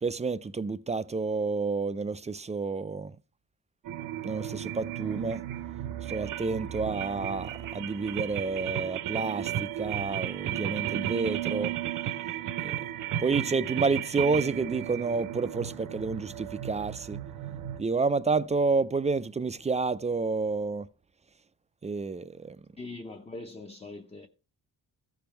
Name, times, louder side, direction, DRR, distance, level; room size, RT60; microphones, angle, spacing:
voice 1, 0.0-3.2 4.2-5.4 6.1-11.7 12.6-12.7 13.2-17.2 17.8-20.9 21.8-22.6, right 4 dB, 20° right, 0.4 m, -29 dB
sound 1, 3.8-17.8, right 11 dB, 65° right, 0.7 m, -34 dB
voice 2, 22.8-24.3, left 2 dB, 15° left, 0.6 m, -42 dB
14.5 x 5.3 x 4.4 m
cardioid pair, 120°, 35 cm